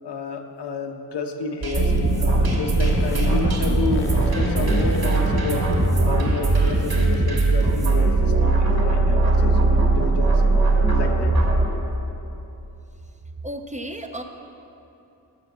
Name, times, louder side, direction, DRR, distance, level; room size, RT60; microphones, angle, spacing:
voice 1, 0.0-5.6 6.0-10.4 10.9-11.3, left 4 dB, 80° left, 4 dB, 0.9 m, -30 dB
sound 1, 1.6-11.7, right 3 dB, 65° right, 2.0 m, -20 dB
sound 2, 1.7-7.3, left 2 dB, 30° left, 0.6 m, -31 dB
voice 2, 13.4-14.2, right 1 dB, 20° right, 4 dB, 0.5 m, -33 dB
9.2 x 6.9 x 6.6 m, 2.9 s
wide cardioid pair, 140°, 40 cm